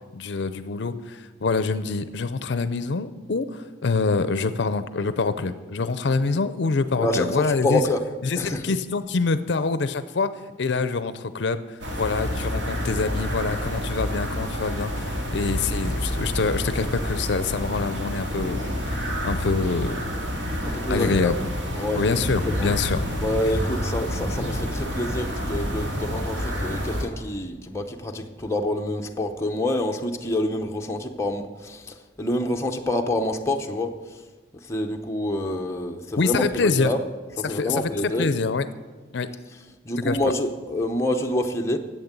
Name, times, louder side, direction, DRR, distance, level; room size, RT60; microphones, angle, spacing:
voice 1, 0.1-7.8 8.2-10.3 10.6-20.0 20.9-21.4 21.9-23.0 36.2-36.9 37.4-38.7 39.1-39.3 40.0-40.2, left 4 dB, 60° left, 12 dB, 0.5 m, -25 dB
voice 2, 7.0-8.0 8.4-8.6 20.6-21.3 21.8-22.2 22.4-22.7 23.2-34.0 34.7-37.0 37.4-38.3 39.9-41.8, left 1 dB, 15° left, 2 dB, 0.7 m, -27 dB
sound 1, 11.8-27.0, equal, 65° right, 2.2 m, -28 dB
11.0 x 8.1 x 8.1 m, 1.3 s
head